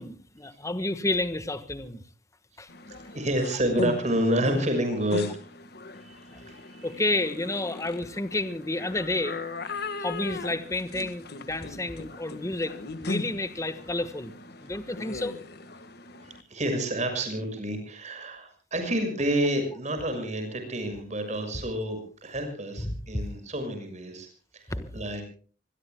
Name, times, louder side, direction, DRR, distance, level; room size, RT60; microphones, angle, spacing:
voice 1, 0.0-2.0 2.6-2.7 6.3-6.4 6.8-9.4 10.0-14.3 14.6-15.4 22.8-22.9 24.7-25.0, left 2 dB, 15° left, 11 dB, 1.4 m, -30 dB
sound 1, 2.7-16.4, left 3 dB, 60° left, 1.6 m, -39 dB
voice 2, 3.1-5.3 6.0-6.9 9.8-10.1 16.2-24.3 24.5-24.7 24.9-25.2, right 1 dB, 40° right, 7 dB, 6.3 m, -29 dB
25.5 x 21.5 x 2.2 m, 0.41 s
head